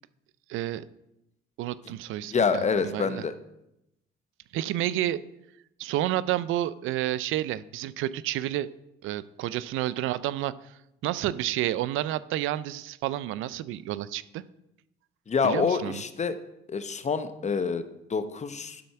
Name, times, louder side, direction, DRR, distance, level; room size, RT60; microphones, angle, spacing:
voice 1, 0.5-0.8 1.6-3.3 4.5-5.2 5.8-8.7 9.0-10.7 11.0-14.4 15.4-16.0, right 13 dB, 90° right, 17 dB, 0.4 m, -30 dB
voice 2, 2.3-3.3 15.3-16.4 16.7-18.8, left 5 dB, 35° left, 11 dB, 0.8 m, -27 dB
11.5 x 4.2 x 5.7 m, 0.84 s
cardioid pair, 90°, 20 cm